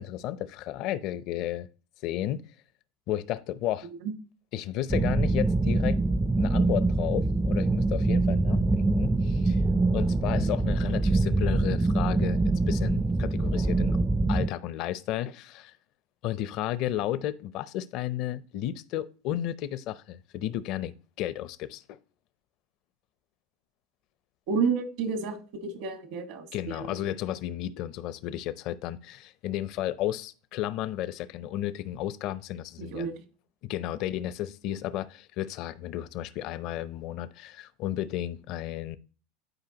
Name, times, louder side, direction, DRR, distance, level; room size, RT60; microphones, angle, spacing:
voice 1, 0.0-1.7 2.0-2.4 3.1-3.9 4.5-6.0 6.4-9.6 9.9-12.4 12.7-14.0 14.3-15.7 16.2-22.0 26.5-33.1 33.6-39.0, left 13 dB, 55° left, 0.6 m, -33 dB
voice 2, 3.8-4.1 24.5-27.0 32.8-33.1, right 5 dB, 65° right, 1.5 m, -31 dB
sound 1, 4.9-14.5, right 2 dB, 10° right, 0.4 m, -24 dB
11.0 x 4.8 x 2.9 m
hypercardioid pair, 95°, 0 cm